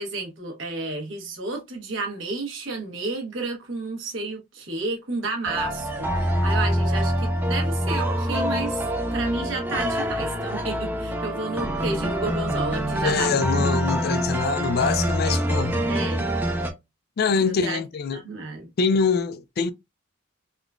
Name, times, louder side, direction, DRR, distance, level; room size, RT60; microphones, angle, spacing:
voice 1, 0.0-8.8 9.1-13.5 15.9-16.2 17.4-17.8 18.1-18.7, right 3 dB, 70° right, 1.1 m, -31 dB
sound 1, 5.5-16.7, equal, 10° right, 0.5 m, -25 dB
voice 2, 13.0-15.9 17.2-18.2 18.8-19.7, left 5 dB, 50° left, 0.3 m, -24 dB
3.6 x 2.3 x 2.3 m
head